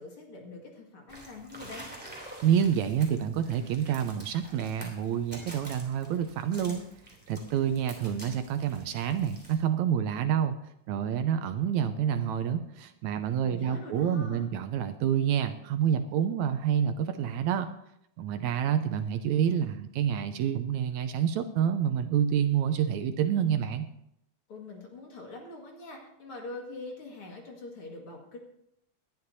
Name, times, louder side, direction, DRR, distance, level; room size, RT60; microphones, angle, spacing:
voice 1, 0.0-1.9 13.4-14.4 24.5-28.4, left 2 dB, 45° left, 0 dB, 2.6 m, -44 dB
sound 1, 1.1-9.5, right 1 dB, 5° right, 2.6 m, -48 dB
voice 2, 2.4-6.8 7.3-10.6 10.9-17.7 18.2-23.9, right 9 dB, 80° right, 9 dB, 1.8 m, -28 dB
19.0 x 11.5 x 2.7 m, 0.76 s
omnidirectional pair, 3.5 m